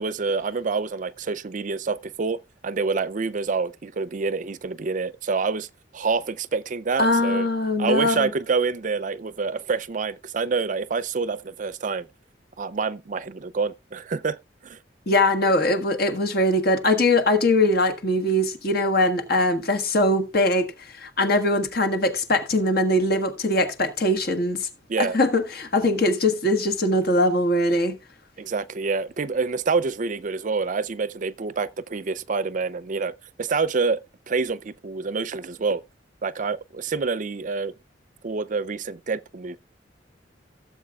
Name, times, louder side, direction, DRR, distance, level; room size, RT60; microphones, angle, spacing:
voice 1, 0.0-2.4 2.6-5.7 5.9-7.5 7.8-12.1 12.6-14.4 14.6-14.8 24.9-25.2 28.4-33.1 33.4-34.0 34.3-35.8 36.2-37.7 38.2-39.6, right 4 dB, 45° right, 0.5 m, -27 dB
voice 2, 7.0-8.3 15.1-24.7 25.0-28.0, left 1 dB, 55° left, 1.5 m, -21 dB
17.0 x 7.4 x 2.3 m
head